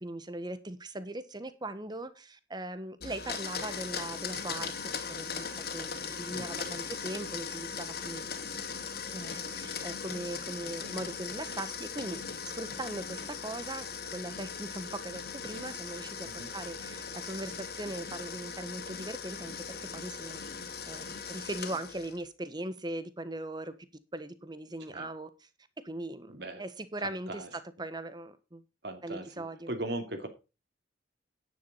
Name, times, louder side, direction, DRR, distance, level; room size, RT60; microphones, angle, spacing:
voice 1, 0.0-4.7 5.1-8.2 9.1-13.9 14.1-20.4 20.9-23.7 24.1-25.5 25.8-28.6 29.0-29.7, right 1 dB, 25° right, 1.2 m, -40 dB
Domestic sounds home sounds, 3.0-22.2, left 6 dB, 60° left, 2.5 m, -39 dB
voice 2, 6.3-6.8 16.2-16.5 24.9-25.1 26.3-26.6 27.3-27.5 28.8-30.3, right 1 dB, 65° right, 2.6 m, -39 dB
10.5 x 10.0 x 4.1 m
head